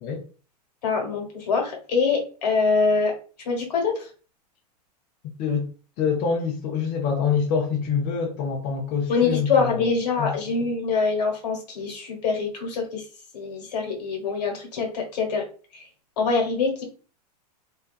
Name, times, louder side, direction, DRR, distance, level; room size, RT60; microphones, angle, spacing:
voice 1, 0.8-3.1 3.4-4.1 9.1-13.0 13.3-15.4 15.7-15.9 16.2-16.8, left 4 dB, 75° left, 1.2 m, -24 dB
voice 2, 6.0-9.9 10.2-10.3, left 6 dB, 40° left, 0.5 m, -25 dB
2.3 x 2.3 x 2.4 m
hypercardioid pair, 110°, 21 cm